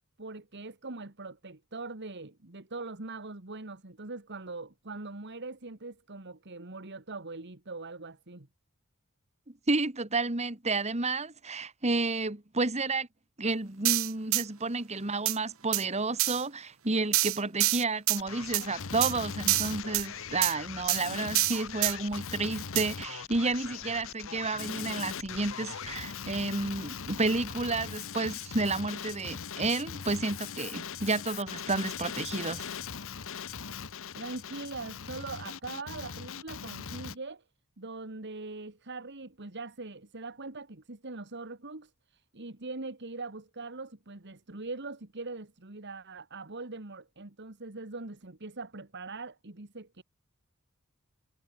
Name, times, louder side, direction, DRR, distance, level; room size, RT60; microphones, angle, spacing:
voice 1, 0.2-8.5 34.1-37.4 37.8-50.0, right 3 dB, 55° right, 2.0 m, -42 dB
voice 2, 9.7-13.1 13.4-32.6, right 3 dB, 30° right, 2.0 m, -31 dB
sound 1, 13.9-14.4 15.3-15.4 15.7-15.8 16.2-16.4 17.1-18.2 18.5-18.7 19.0-19.1 19.5-20.1 20.4-20.5 20.9-21.0 21.4-21.9 22.8-22.9, right 16 dB, 70° right, 1.4 m, -26 dB
Male speech man speaking, 18.2-37.2, left 7 dB, 65° left, 1.0 m, -40 dB
head